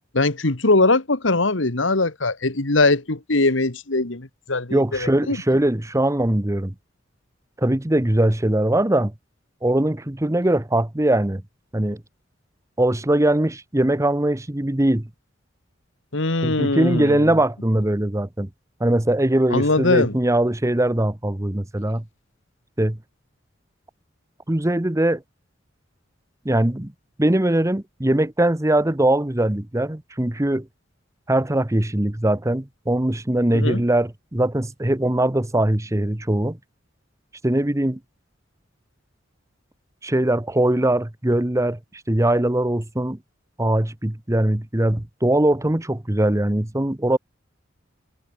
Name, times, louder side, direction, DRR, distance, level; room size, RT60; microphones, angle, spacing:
voice 1, 0.1-5.4 16.1-17.3 19.5-20.1 33.5-33.8, left 2 dB, 80° left, 1.9 m, -21 dB
voice 2, 4.7-6.7 7.6-9.1 9.6-11.4 11.7-12.0 12.8-15.1 16.4-18.5 18.8-22.0 22.8-23.0 24.5-25.2 26.4-26.9 27.2-30.7 31.3-36.6 37.4-38.0 40.0-41.8 42.1-43.2 43.6-47.2, right 1 dB, 15° right, 1.0 m, -21 dB
head